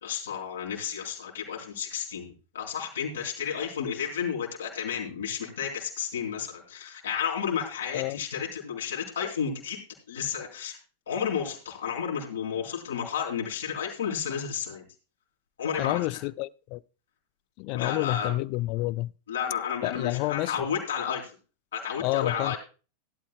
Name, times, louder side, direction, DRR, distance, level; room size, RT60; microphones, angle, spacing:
voice 1, 0.0-9.8 10.1-10.8 11.1-14.8 15.6-16.0 17.7-18.3 19.3-21.3 21.7-22.6, left 7 dB, 65° left, 3.5 m, -32 dB
voice 2, 15.8-16.8 17.6-19.1 19.8-20.6 22.0-22.6, left 19 dB, 45° left, 0.4 m, -29 dB
17.0 x 11.5 x 2.2 m
figure-of-eight pair, 90°, 0 cm